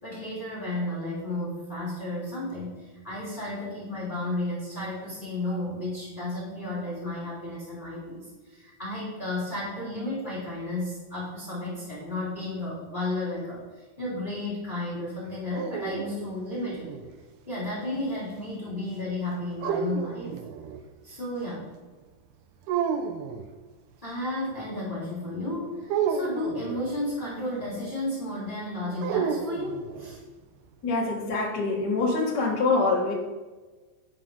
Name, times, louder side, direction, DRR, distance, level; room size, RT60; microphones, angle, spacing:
voice 1, 0.0-16.9 17.5-20.3 21.0-21.7 24.0-30.2, left 1 dB, 15° left, -9 dB, 2.4 m, -33 dB
sound 1, 15.3-17.1 19.6-20.8 22.7-23.5 25.9-27.0 29.0-30.2, right 7 dB, 85° right, 2.2 m, -31 dB
voice 2, 30.8-33.1, left 3 dB, 90° left, -3 dB, 0.9 m, -25 dB
10.5 x 5.3 x 5.5 m, 1.3 s
omnidirectional pair, 5.2 m